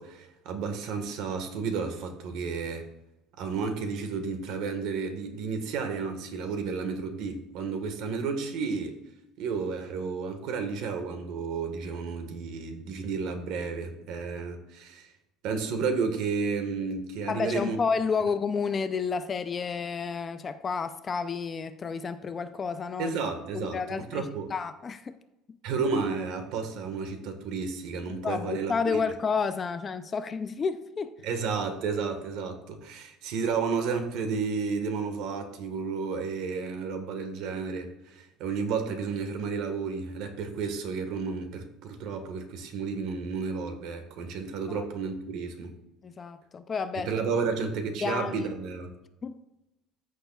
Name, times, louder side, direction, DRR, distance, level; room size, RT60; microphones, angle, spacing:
voice 1, 0.0-2.8 3.4-9.0 9.4-15.1 15.4-17.8 23.0-24.5 25.6-28.7 31.2-45.7 46.9-48.9, right 5 dB, 60° right, 1.4 m, -32 dB
voice 2, 17.3-23.2 23.5-25.2 25.5-25.6 28.1-31.1 44.7-44.8 46.0-47.1 48.0-48.5 49.2-49.4, left 5 dB, 25° left, 0.4 m, -31 dB
14.0 x 6.6 x 2.3 m
cardioid pair, 160°, 0 cm